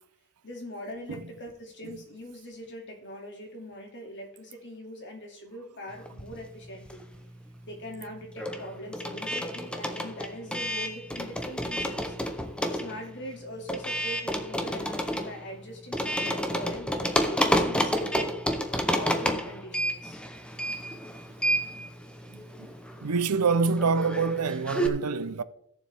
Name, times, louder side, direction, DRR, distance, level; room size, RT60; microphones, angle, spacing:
voice 1, 0.4-7.0 7.7-12.1 12.6-18.3 18.9-20.2, equal, 55° left, 2.4 m, -41 dB
sound 1, 6.1-7.3 7.6-24.9, equal, 5° left, 0.8 m, -30 dB
voice 2, 23.0-25.4, right 4 dB, 85° right, 0.6 m, -26 dB
16.0 x 7.2 x 3.5 m
head